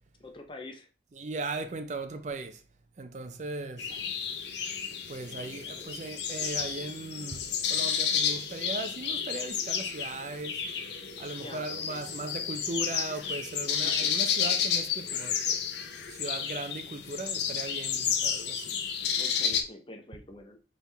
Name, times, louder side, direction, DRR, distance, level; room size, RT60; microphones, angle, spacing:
voice 1, 0.2-0.9 11.4-12.0 13.8-14.2 19.2-20.6, left 2 dB, 25° left, 0.7 m, -45 dB
voice 2, 1.1-2.6 3.0-4.1 5.1-10.6 11.2-15.6 16.1-18.8, right 2 dB, 40° right, 0.5 m, -38 dB
sound 1, 3.8-19.6, left 7 dB, 70° left, 0.7 m, -31 dB
4.7 x 3.4 x 3.3 m
head